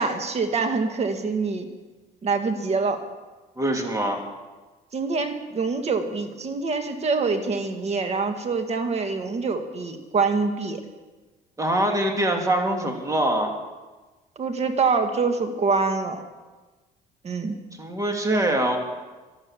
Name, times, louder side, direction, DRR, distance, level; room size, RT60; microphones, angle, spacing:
voice 1, 0.0-1.7 2.2-3.0 4.9-10.8 14.4-16.2 17.2-17.6, right 4 dB, 40° right, 7 dB, 1.9 m, -25 dB
voice 2, 3.6-4.2 11.6-13.5 17.8-18.8, right 1 dB, 20° right, 2 dB, 2.7 m, -23 dB
12.5 x 12.0 x 7.4 m, 1.2 s
cardioid pair, 110°, 17 cm